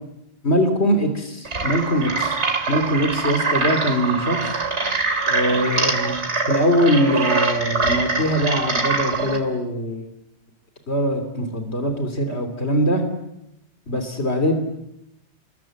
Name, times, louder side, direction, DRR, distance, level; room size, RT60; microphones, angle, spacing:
voice 1, 0.4-2.3 2.7-4.6 5.3-10.1 10.9-13.0 13.9-14.5, equal, 75° left, 6 dB, 3.5 m, -22 dB
sound 1, 1.4-9.4, right 3 dB, 85° right, 3.1 m, -23 dB
28.5 x 21.5 x 7.7 m, 0.85 s
omnidirectional pair, 1.1 m